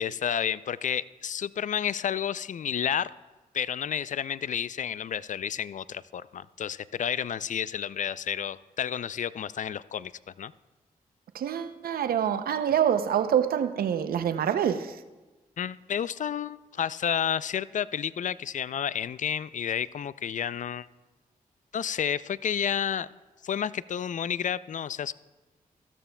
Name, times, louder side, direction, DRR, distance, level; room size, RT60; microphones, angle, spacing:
voice 1, 0.0-3.1 3.5-10.1 10.4-10.5 15.6-20.9 21.7-23.1 23.4-25.1, left 8 dB, 55° left, 0.4 m, -31 dB
voice 2, 11.3-15.0, right 9 dB, 80° right, 0.6 m, -26 dB
15.0 x 13.5 x 2.2 m
supercardioid pair, 45°, 15 cm